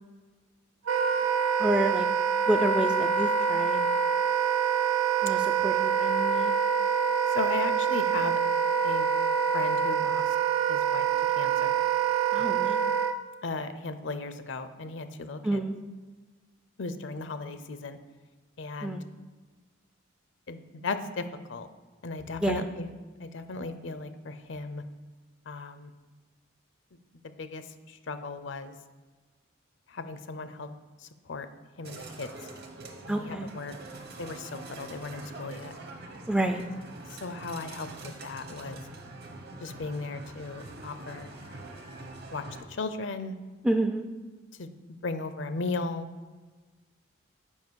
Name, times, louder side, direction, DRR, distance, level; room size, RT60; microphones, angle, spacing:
Wind instrument woodwind instrument, 0.9-13.2, right 7 dB, 90° right, 0.5 m, -26 dB
voice 1, 1.6-2.1 2.5-3.8 5.2-6.5 12.3-12.9 15.4-15.7 18.8-19.0 22.4-22.6 33.1-33.5 36.3-36.6 43.6-44.1, right 1 dB, 5° right, 6 dB, 0.4 m, -28 dB
voice 2, 7.3-8.4 8.8-9.1 9.5-10.4 10.7-11.1 11.4-11.8 12.4-12.7 13.4-15.6 16.8-18.0 18.6-19.0 20.5-21.2 21.5-21.7 22.0-22.9 23.2-24.8 25.5-25.9 27.4-28.7 29.9-30.7 31.0-31.5 31.8-32.5 32.8-33.7 34.2-35.7 37.1-38.8 39.6-41.8 42.3-42.4 42.7-43.4 44.5-44.7 45.0-46.1, left 3 dB, 60° left, 10 dB, 0.6 m, -36 dB
sound 1, 31.8-42.6, right 2 dB, 50° right, 1.0 m, -44 dB
7.2 x 5.0 x 6.3 m, 1.4 s
head